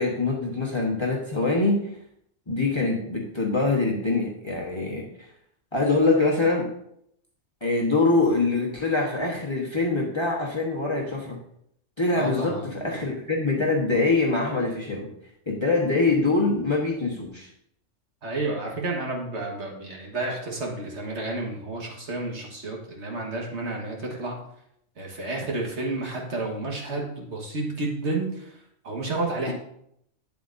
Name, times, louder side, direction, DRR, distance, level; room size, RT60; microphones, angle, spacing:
voice 1, 0.0-1.8 2.5-5.1 5.7-6.7 7.6-11.4 12.0-15.1 15.5-17.5, left 3 dB, 25° left, -2 dB, 1.2 m, -24 dB
voice 2, 12.1-12.7 18.2-24.4 25.0-28.6 28.8-29.5, right 2 dB, 60° right, -1 dB, 1.7 m, -31 dB
9.1 x 7.7 x 2.6 m, 0.72 s
omnidirectional pair, 1.3 m